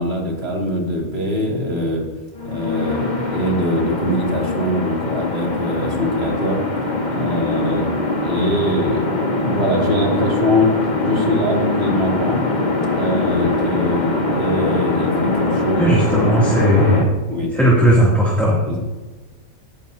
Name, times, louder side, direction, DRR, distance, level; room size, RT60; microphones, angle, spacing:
voice 1, 0.0-2.1 2.4-6.6 7.1-7.9 8.2-10.7 11.0-12.4 12.8-16.5 16.9-17.6 18.7-18.8, left 1 dB, 45° right, -1 dB, 3.0 m, -22 dB
sound 1, 2.4-17.0, left 2 dB, 30° left, 1.7 m, -22 dB
voice 2, 15.8-17.1 17.5-18.8, right 1 dB, ahead, -5 dB, 2.6 m, -16 dB
17.5 x 12.5 x 2.8 m, 1.2 s
omnidirectional pair, 1.5 m